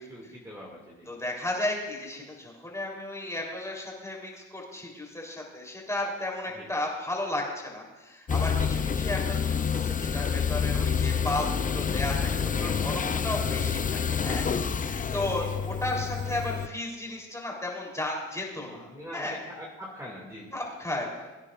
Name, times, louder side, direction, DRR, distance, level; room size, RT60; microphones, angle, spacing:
voice 1, 0.0-1.1 6.5-6.7 13.0-13.2 15.2-15.5 18.7-20.6, equal, 10° right, -4 dB, 2.5 m, -43 dB
voice 2, 1.1-12.2 12.4-19.4 20.5-21.3, left 1 dB, 10° left, -2 dB, 3.8 m, -34 dB
sound 1, 8.3-16.7, left 6 dB, 25° left, 0.5 m, -28 dB
21.5 x 9.7 x 2.6 m, 1.1 s
cardioid pair, 90°, 30 cm